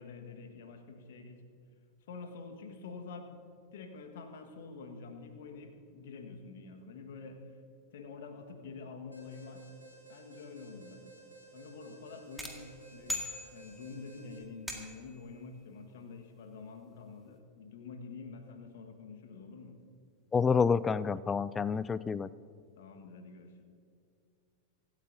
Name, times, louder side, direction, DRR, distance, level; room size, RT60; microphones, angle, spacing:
voice 1, 0.0-1.5 2.1-3.4 3.7-7.5 7.9-9.6 10.1-11.1 11.5-19.8 22.8-23.6, left 4 dB, 55° left, 5 dB, 1.7 m, -47 dB
Alarm, 9.1-14.4, right 3 dB, 90° left, 3.8 m, -55 dB
sound 1, 12.4-14.0 14.7-15.2, left 2 dB, ahead, 2.1 m, -40 dB
voice 2, 20.3-22.3, left 5 dB, 15° left, 19 dB, 0.3 m, -28 dB
25.5 x 13.0 x 2.8 m, 2.3 s
figure-of-eight pair, 90°, 0 cm